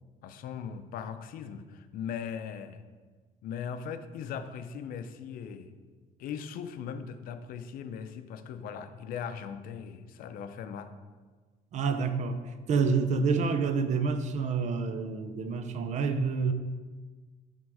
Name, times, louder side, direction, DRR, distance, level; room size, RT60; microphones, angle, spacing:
voice 1, 0.2-2.8 3.4-5.7 6.2-10.9, left 7 dB, 70° left, 9 dB, 0.6 m, -39 dB
voice 2, 11.7-16.5, right 5 dB, 50° right, 9 dB, 0.7 m, -28 dB
10.5 x 3.7 x 4.8 m, 1.4 s
cardioid pair, 130°, 15 cm